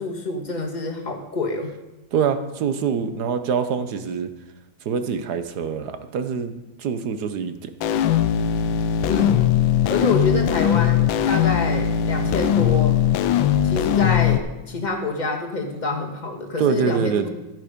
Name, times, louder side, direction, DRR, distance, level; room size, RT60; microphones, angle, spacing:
voice 1, 0.0-1.8 9.1-9.5 9.9-13.0 13.6-17.3, left 2 dB, 25° left, 2 dB, 1.6 m, -27 dB
voice 2, 2.1-4.3 4.8-6.5 6.8-7.7 16.6-17.3, right 6 dB, 60° right, 10 dB, 1.4 m, -24 dB
sound 1, 7.8-14.4, left 10 dB, 85° left, 1.4 m, -20 dB
13.5 x 9.7 x 5.2 m, 0.99 s
omnidirectional pair, 2.1 m